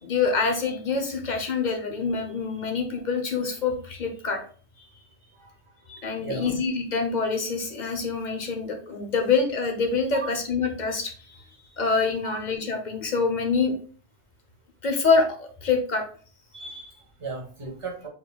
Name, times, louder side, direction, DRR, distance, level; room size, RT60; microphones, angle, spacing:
voice 1, 0.0-4.4 5.9-11.4 11.8-13.7 14.8-16.0, left 4 dB, 45° left, 4 dB, 1.0 m, -26 dB
voice 2, 6.2-6.5 10.1-10.3 12.2-12.4 16.5-18.1, right 4 dB, 30° right, -1 dB, 1.2 m, -36 dB
4.8 x 4.0 x 2.3 m, 0.42 s
omnidirectional pair, 1.1 m